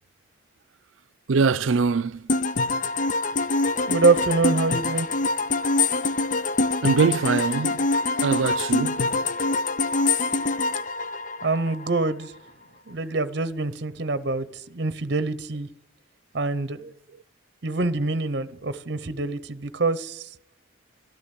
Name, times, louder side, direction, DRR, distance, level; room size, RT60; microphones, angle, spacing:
voice 1, 1.3-2.3 6.8-7.9 8.2-9.0, right 5 dB, 85° right, 0.5 m, -23 dB
sound 1, 2.3-12.0, left 3 dB, 40° left, 0.5 m, -25 dB
voice 2, 3.9-5.1 11.4-12.3 12.9-15.7 16.3-16.9 17.6-20.3, right 3 dB, 55° right, 0.8 m, -25 dB
13.0 x 13.0 x 8.2 m
head